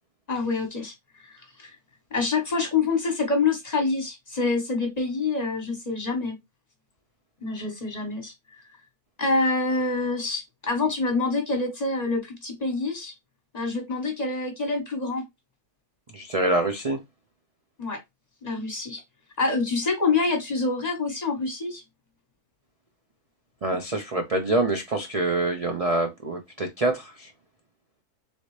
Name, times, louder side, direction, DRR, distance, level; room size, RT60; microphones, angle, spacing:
voice 1, 0.3-0.9 1.2-1.7 2.1-6.3 7.4-8.3 9.2-13.1 13.5-15.2 17.8-18.0 18.4-19.0 19.4-21.8, left 3 dB, 30° left, 1.3 m, -26 dB
voice 2, 16.1-17.0 23.6-27.3, right 2 dB, 40° right, 0.5 m, -25 dB
4.0 x 3.5 x 3.2 m
omnidirectional pair, 1.6 m